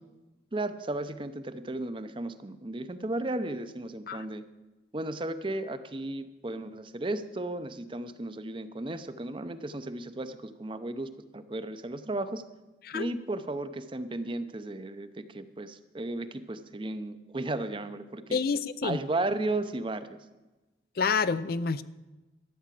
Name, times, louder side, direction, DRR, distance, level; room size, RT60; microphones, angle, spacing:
voice 1, 0.5-4.4 4.9-12.4 12.9-18.4 18.8-20.1, right 2 dB, 30° right, 11 dB, 0.6 m, -34 dB
voice 2, 18.3-19.0 21.0-21.8, left 5 dB, 55° left, 14 dB, 0.5 m, -28 dB
13.0 x 8.6 x 7.5 m, 1.1 s
head